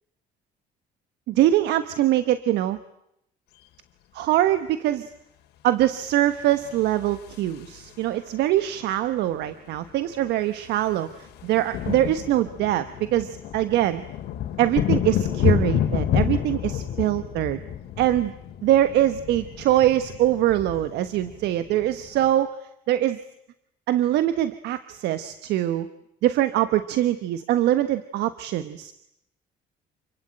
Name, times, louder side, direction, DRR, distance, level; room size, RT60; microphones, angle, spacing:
voice 1, 1.3-2.8 4.1-5.1 5.6-14.0 14.6-17.6 18.0-18.3 18.6-22.5 22.9-23.2 23.9-25.9 26.2-28.9, right 13 dB, 80° right, 12 dB, 1.3 m, -23 dB
sound 1, 6.5-8.1 9.4-9.5 9.7-9.9 10.2-22.3, left 10 dB, 75° left, 3.1 m, -29 dB
29.0 x 22.5 x 9.0 m, 0.80 s
cardioid pair, 110°, 17 cm